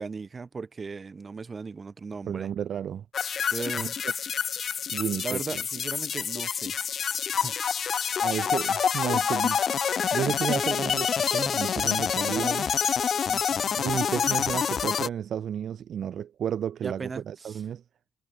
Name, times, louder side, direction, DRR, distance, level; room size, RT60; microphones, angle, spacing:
voice 1, 0.0-2.5 3.5-4.0 5.2-6.7 7.3-7.6 13.3-13.7 16.8-17.6, right 4 dB, 35° right, 2.6 m, -37 dB
voice 2, 2.3-3.0 3.4-3.9 4.9-5.6 8.2-9.6 10.1-12.7 13.8-17.8, right 9 dB, 60° right, 0.8 m, -32 dB
sound 1, 3.1-15.1, left 7 dB, 50° left, 1.1 m, -27 dB
cardioid pair, 90°, 0 cm